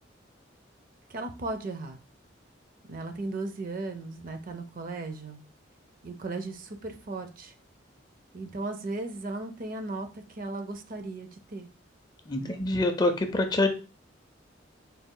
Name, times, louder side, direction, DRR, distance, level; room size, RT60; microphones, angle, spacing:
voice 1, 1.1-2.0 2.9-5.4 6.0-7.5 8.3-11.7 12.4-12.6, right 2 dB, 45° right, 7 dB, 0.5 m, -36 dB
voice 2, 12.3-13.7, left 2 dB, 20° left, 6 dB, 0.4 m, -25 dB
4.0 x 2.3 x 3.7 m, 0.33 s
head